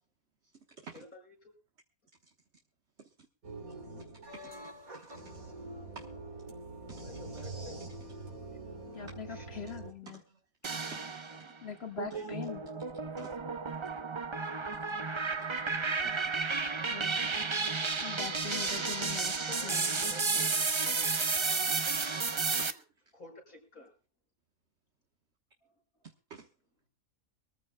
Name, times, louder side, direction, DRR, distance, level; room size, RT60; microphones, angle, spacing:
voice 1, 0.9-1.5 7.0-7.9 8.5-8.6 9.3-9.6 11.3-11.4 12.1-12.4 19.5-19.7 20.0-20.5 23.1-23.9, left 2 dB, 80° left, 6.2 m, -52 dB
sound 1, 3.4-9.9, right 2 dB, 80° right, 3.4 m, -44 dB
voice 2, 8.9-10.2 11.6-12.6 16.8-17.2 18.0-20.1, left 6 dB, 45° left, 2.0 m, -42 dB
voice 3, 10.1-11.5 12.1-12.2 13.2-13.3 14.7-14.8 15.4-15.5 15.8-16.2 17.0-17.4 18.3-18.4 21.4-21.8 22.5-22.9 26.3-26.5, right 5 dB, 55° right, 1.4 m, -51 dB
sound 2, 10.6-11.5 12.0-22.7, right 4 dB, 30° right, 0.5 m, -32 dB
24.5 x 14.5 x 2.2 m
omnidirectional pair, 1.5 m